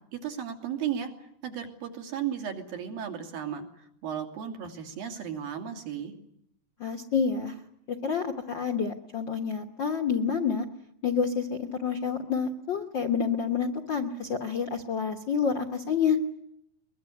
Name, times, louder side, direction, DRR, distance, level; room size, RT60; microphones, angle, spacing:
voice 1, 0.1-1.1 1.4-6.1, right 9 dB, 80° right, 4 dB, 4.5 m, -35 dB
voice 2, 6.8-7.5 7.9-10.7 11.0-16.2, left 6 dB, 60° left, 5 dB, 1.2 m, -28 dB
22.0 x 21.5 x 9.7 m, 0.76 s
omnidirectional pair, 4.1 m